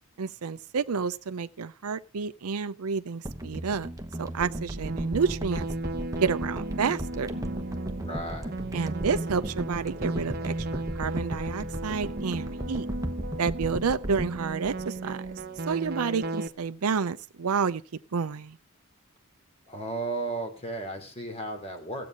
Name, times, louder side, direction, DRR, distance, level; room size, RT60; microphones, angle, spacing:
voice 1, 0.2-3.9 4.2-5.6 6.2-7.4 8.7-12.9 13.4-15.2 15.7-17.8 18.1-18.6, right 5 dB, 85° right, 0.6 m, -30 dB
sound 1, 3.3-15.6 15.9-16.0, right 1 dB, 15° right, 1.0 m, -36 dB
sound 2, 4.4-16.5, right 2 dB, 45° right, 0.9 m, -36 dB
voice 2, 8.0-8.5 19.7-22.1, right 2 dB, 30° left, 2.9 m, -34 dB
15.0 x 8.6 x 6.2 m
head